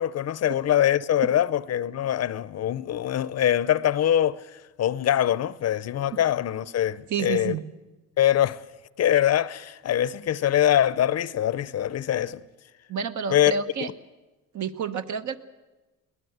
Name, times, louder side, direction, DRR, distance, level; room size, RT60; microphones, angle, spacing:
voice 1, 0.0-7.5 8.2-8.6 9.0-12.4 13.3-13.5, left 11 dB, 50° left, 0.7 m, -23 dB
voice 2, 7.1-7.6 12.9-13.9 14.5-15.4, right 6 dB, 60° right, 1.4 m, -29 dB
22.0 x 18.5 x 8.0 m
cardioid pair, 95°, 33 cm